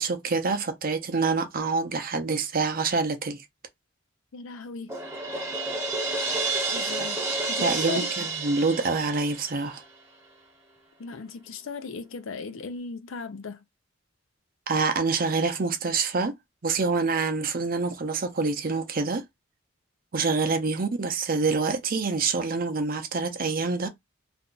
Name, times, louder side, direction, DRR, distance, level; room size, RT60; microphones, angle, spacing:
voice 1, 0.0-3.4 7.6-9.8 14.7-16.3 16.6-19.2 20.1-23.9, right 4 dB, 45° right, 0.6 m, -26 dB
voice 2, 4.3-5.0 6.7-8.3 11.0-13.6, left 4 dB, 80° left, 0.5 m, -37 dB
Crash cymbal, 4.9-9.8, right 3 dB, 15° right, 0.8 m, -30 dB
2.6 x 2.2 x 3.7 m
head